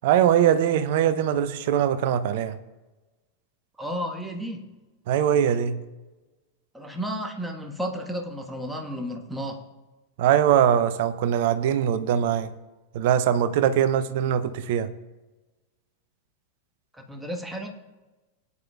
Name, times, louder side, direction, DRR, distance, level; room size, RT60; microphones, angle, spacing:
voice 1, 0.0-2.6 5.1-5.8 10.2-12.5 12.9-14.9, right 9 dB, 50° right, 0.7 m, -22 dB
voice 2, 3.8-4.6 6.7-9.7 16.9-17.7, equal, 5° right, 1.5 m, -32 dB
19.5 x 9.7 x 2.4 m
figure-of-eight pair, 90°, 0 cm